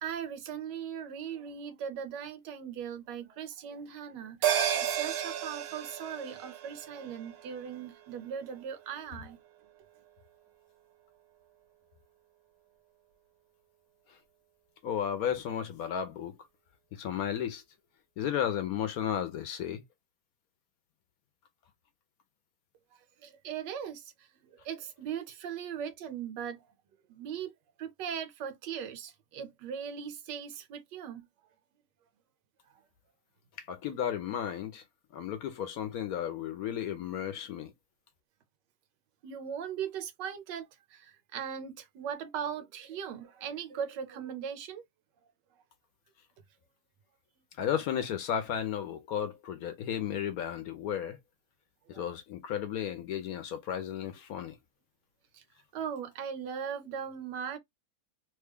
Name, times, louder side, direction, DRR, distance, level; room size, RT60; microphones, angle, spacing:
voice 1, 0.0-9.4 23.2-26.7 27.1-27.5 27.8-31.3 39.2-44.8 51.9-52.1 55.3-55.4 55.7-57.6, right 8 dB, 85° right, 1.4 m, -39 dB
sound 1, 4.4-9.1 9.5-9.6, right 9 dB, 65° right, 1.0 m, -34 dB
voice 2, 14.8-16.3 16.9-17.6 18.2-19.8 33.6-34.8 35.1-37.7 47.6-51.2 51.9-54.6, left 9 dB, 70° left, 0.9 m, -33 dB
3.2 x 2.2 x 3.4 m
omnidirectional pair, 1.9 m